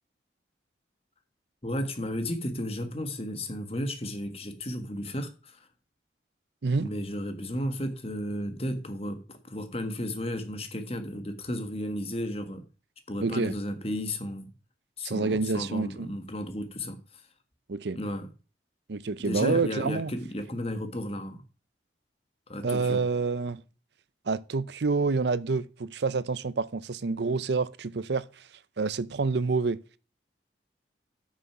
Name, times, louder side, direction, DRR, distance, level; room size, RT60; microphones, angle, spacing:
voice 1, 1.6-5.7 6.8-12.6 13.1-14.5 15.0-17.3 17.9-18.3 19.2-21.4 22.5-23.0, equal, 35° left, 1.4 m, -33 dB
voice 2, 13.2-13.5 15.0-16.1 17.7-18.0 18.9-20.1 22.6-23.6 24.3-28.4 28.8-29.8, right 4 dB, 70° right, 0.6 m, -28 dB
9.5 x 6.4 x 5.8 m
head